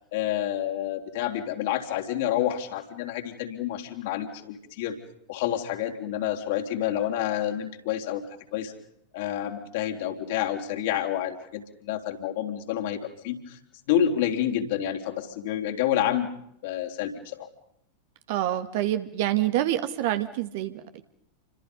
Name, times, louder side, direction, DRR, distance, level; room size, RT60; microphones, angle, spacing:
voice 1, 0.1-5.0 5.3-8.2 8.5-8.7 9.1-13.6 13.9-16.3 16.6-17.5, left 11 dB, 50° left, 3 dB, 3.9 m, -28 dB
voice 2, 18.3-21.0, right 13 dB, 50° right, 9 dB, 2.0 m, -27 dB
29.5 x 25.5 x 5.4 m, 0.73 s
figure-of-eight pair, 90°, 0 cm